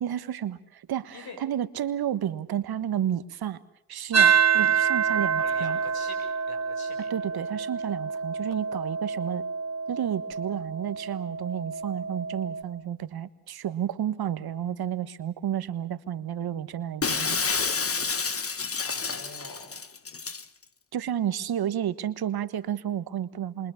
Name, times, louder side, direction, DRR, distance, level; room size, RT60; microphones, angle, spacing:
voice 1, 0.0-3.6 3.9-5.8 7.1-9.4 9.9-17.4 20.9-23.7, right 10 dB, 75° right, 13 dB, 1.4 m, -31 dB
sound 1, 4.1-12.6, right 7 dB, 45° right, 2.1 m, -27 dB
voice 2, 5.4-7.1 18.9-19.9, left 2 dB, 70° left, 6 dB, 7.2 m, -44 dB
Shatter, 17.0-20.4, left 5 dB, 35° left, 1.5 m, -29 dB
27.5 x 24.0 x 7.2 m, 0.72 s
supercardioid pair, 50°, 37 cm